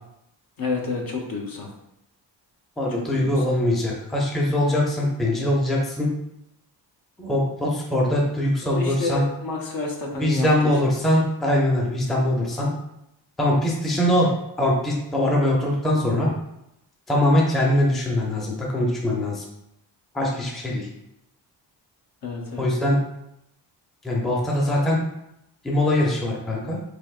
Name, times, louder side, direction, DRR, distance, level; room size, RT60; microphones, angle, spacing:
voice 1, 0.6-1.7 3.0-3.4 8.6-10.9 22.2-22.7, left 3 dB, 55° left, 0 dB, 0.8 m, -30 dB
voice 2, 2.8-6.1 7.2-9.2 10.2-12.7 13.4-14.3 14.6-16.3 17.1-19.4 20.1-20.9 22.6-23.0 24.0-25.0 25.6-26.8, left 1 dB, ahead, -3 dB, 0.5 m, -22 dB
3.9 x 3.3 x 2.4 m, 0.82 s
wide cardioid pair, 130°, 44 cm